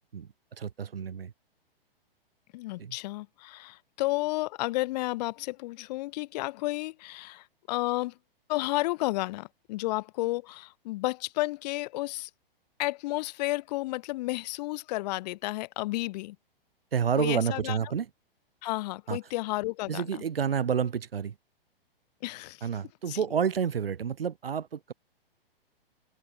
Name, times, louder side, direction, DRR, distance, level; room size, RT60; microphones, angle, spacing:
voice 1, 0.6-1.3 2.8-3.0 16.9-18.1 19.1-19.2 19.9-21.4 22.6-24.9, right 7 dB, 75° right, 2.1 m, -29 dB
voice 2, 2.5-8.1 8.5-12.3 12.8-16.4 17.2-17.8 18.6-20.2 22.2-22.6 23.1-23.2, left 20 dB, 45° left, 2.8 m, -32 dB
open air
hypercardioid pair, 120°, 30 cm